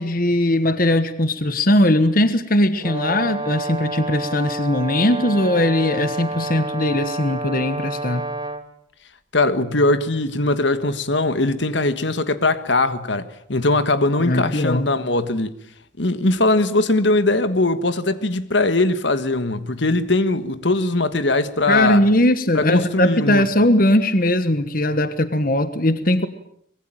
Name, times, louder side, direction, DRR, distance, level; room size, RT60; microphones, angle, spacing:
voice 1, 0.0-8.2 14.2-14.9 21.7-26.3, left 1 dB, 45° left, 1.4 m, -19 dB
Brass instrument, 2.8-8.6, right 2 dB, 25° right, 2.0 m, -29 dB
voice 2, 9.3-15.5 16.0-22.0 22.5-23.4, left 2 dB, 60° left, 1.5 m, -20 dB
24.5 x 21.5 x 9.1 m
head